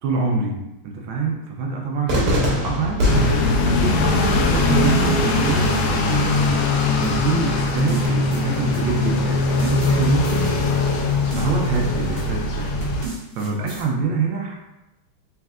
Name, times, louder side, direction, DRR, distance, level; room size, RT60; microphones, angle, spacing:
voice 1, 0.0-3.1 3.6-10.8 11.3-12.8 13.3-14.6, right 4 dB, 75° right, 0 dB, 1.4 m, -25 dB
Cheering / Fireworks, 2.1-8.1, left 1 dB, 60° right, 1.4 m, -26 dB
sound 1, 3.0-13.1, left 3 dB, 80° left, 1.4 m, -21 dB
sound 2, 7.0-9.2 9.6-11.8 12.2-12.4 12.8-13.8, right 1 dB, 35° right, 1.1 m, -34 dB
4.1 x 3.5 x 2.4 m, 0.97 s
omnidirectional pair, 2.4 m